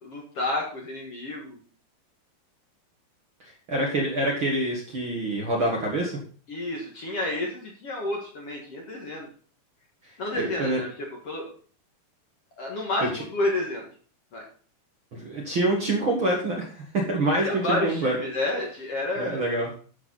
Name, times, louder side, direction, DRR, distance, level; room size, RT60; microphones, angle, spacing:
voice 1, 0.0-1.6 6.5-9.3 10.2-11.4 12.6-13.9 14.3-14.4 17.4-19.4, left 2 dB, 50° left, -1 dB, 2.2 m, -30 dB
voice 2, 3.4-6.1 10.4-10.8 13.0-13.1 15.1-18.2 19.2-19.7, right 2 dB, 45° right, -1 dB, 2.0 m, -26 dB
12.5 x 7.2 x 4.1 m, 0.42 s
omnidirectional pair, 4.4 m